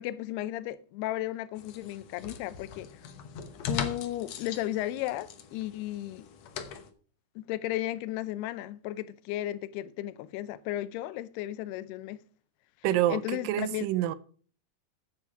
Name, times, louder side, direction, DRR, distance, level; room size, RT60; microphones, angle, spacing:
voice 1, 0.0-2.9 3.7-6.3 7.4-12.2 13.1-13.9, left 14 dB, 85° left, 2.7 m, -34 dB
sound 1, 1.6-6.9, left 6 dB, 70° left, 1.6 m, -40 dB
voice 2, 12.8-14.2, right 13 dB, 80° right, 2.1 m, -27 dB
8.7 x 7.8 x 5.9 m
omnidirectional pair, 4.6 m